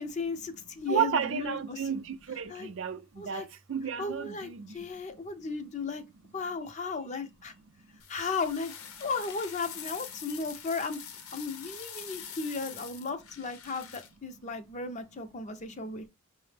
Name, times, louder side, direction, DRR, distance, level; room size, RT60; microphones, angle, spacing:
voice 1, 0.0-1.9 2.5-2.7 3.2-3.5 4.0-6.0 6.3-7.5 8.1-8.7 9.0-11.0 11.3-16.0, left 4 dB, 35° left, 0.5 m, -35 dB
voice 2, 0.9-4.7, right 7 dB, 60° right, 0.4 m, -32 dB
sound 1, 8.0-14.1, left 8 dB, 85° left, 0.7 m, -45 dB
5.6 x 2.0 x 3.2 m
head